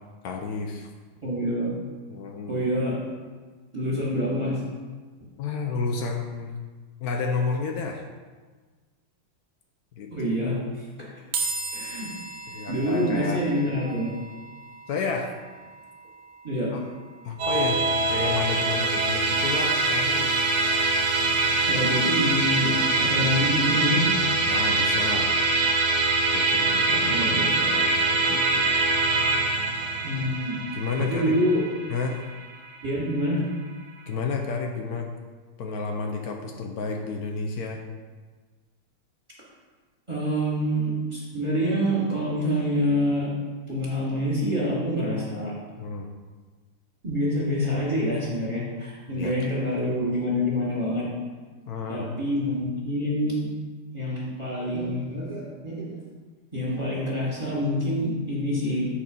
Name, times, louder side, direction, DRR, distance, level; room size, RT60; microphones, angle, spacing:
voice 1, 0.2-0.9 2.1-2.7 5.4-6.5 7.0-8.0 9.9-10.4 12.5-13.4 14.9-15.3 16.7-16.8 17.2-20.4 22.8-22.9 24.5-25.4 26.3-28.8 30.7-31.4 31.9-32.2 34.1-35.1 35.6-37.8 45.8-46.1 49.1-49.4 51.7-52.1, left 4 dB, 85° left, 2 dB, 0.8 m, -31 dB
voice 2, 1.2-1.7 2.5-3.0 3.7-4.6 10.1-10.6 11.7-12.1 12.7-14.1 16.4-16.7 21.7-24.1 26.9-27.6 30.0-30.6 31.0-31.6 32.8-33.4 40.1-43.3 43.7-45.5 47.0-51.1 51.9-53.5 53.9-56.0 56.5-58.9, equal, 15° right, -6 dB, 1.9 m, -26 dB
sound 1, 11.3-24.7, right 3 dB, 75° right, 1.6 m, -40 dB
Musical instrument, 17.4-32.9, right 3 dB, 60° right, 1.4 m, -24 dB
7.5 x 4.2 x 5.3 m, 1.4 s
omnidirectional pair, 2.3 m